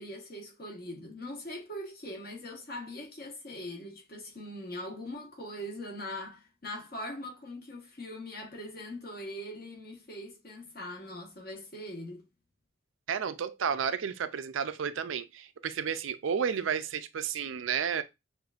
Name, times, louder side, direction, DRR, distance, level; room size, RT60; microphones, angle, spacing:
voice 1, 0.0-12.2, left 1 dB, 45° left, 1.2 m, -41 dB
voice 2, 13.1-18.0, right 7 dB, 70° right, 0.4 m, -32 dB
6.3 x 2.6 x 2.4 m
head